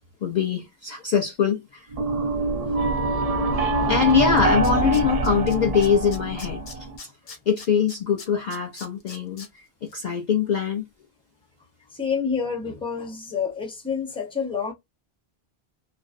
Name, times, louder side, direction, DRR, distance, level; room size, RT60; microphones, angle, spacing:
voice 1, 0.2-1.9 3.9-6.9 7.5-10.8, left 7 dB, 55° left, 0.5 m, -23 dB
sound 1, 1.9-7.0, right 2 dB, 50° right, 0.5 m, -24 dB
Tools, 4.0-4.1 4.4-5.5 5.8-9.5 9.9-10.0, left 4 dB, 70° left, 1.0 m, -41 dB
voice 2, 11.9-14.7, left 6 dB, 5° left, 0.6 m, -28 dB
2.5 x 2.0 x 2.4 m
omnidirectional pair, 1.1 m